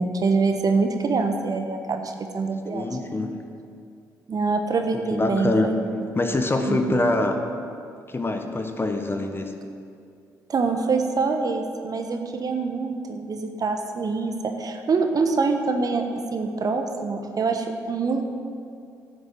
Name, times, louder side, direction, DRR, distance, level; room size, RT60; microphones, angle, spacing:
voice 1, 0.0-2.9 4.3-5.7 6.7-7.0 10.5-16.0 16.3-18.2, right 4 dB, 45° right, 5 dB, 1.2 m, -25 dB
voice 2, 2.7-3.4 4.9-5.7 6.1-7.4 8.1-9.5, left 2 dB, 25° left, 5 dB, 1.2 m, -24 dB
10.5 x 7.3 x 7.7 m, 2.4 s
hypercardioid pair, 50°, 8 cm